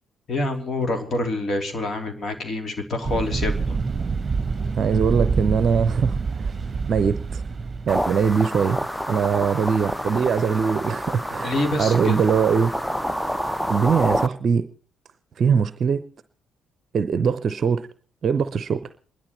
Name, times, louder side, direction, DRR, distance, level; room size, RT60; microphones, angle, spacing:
voice 1, 0.3-3.8 11.4-12.2, left 2 dB, 45° left, 5 dB, 3.3 m, -26 dB
sound 1, 3.0-8.3, right 4 dB, 35° right, 1.1 m, -26 dB
voice 2, 4.8-6.5 6.9-7.4 7.9-8.8 9.1-12.7 13.7-14.7 15.4-16.0 16.9-17.9 18.2-18.9, right 6 dB, 50° right, 12 dB, 0.7 m, -22 dB
sound 2, 7.9-14.3, equal, 5° left, 0.8 m, -28 dB
27.5 x 11.5 x 4.4 m, 0.43 s
hypercardioid pair, 45°, 0 cm